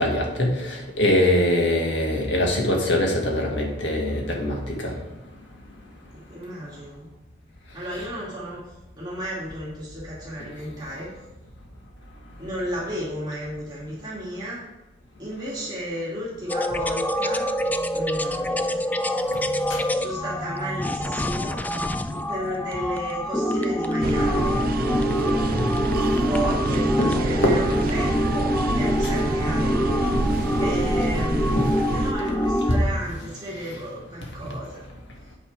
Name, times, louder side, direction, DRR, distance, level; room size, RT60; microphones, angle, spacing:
voice 1, 0.0-4.9 19.7-19.8 25.5-25.7 27.0-27.1 27.4-27.6 31.6-31.7 32.7-32.8 34.4-34.5, left 1 dB, 85° left, 0 dB, 1.7 m, -23 dB
voice 2, 6.1-7.1 7.7-8.7 9.0-11.1 12.4-14.6 15.2-17.5 17.9-18.9 19.9-21.6 22.1-24.6 26.2-29.7 30.6-34.8, right 1 dB, 25° right, -7 dB, 2.4 m, -33 dB
sound 1, 16.5-32.8, equal, 10° left, 0.3 m, -25 dB
sound 2, 24.0-32.1, right 3 dB, 50° right, 0.5 m, -27 dB
8.2 x 5.7 x 4.7 m, 1.0 s
head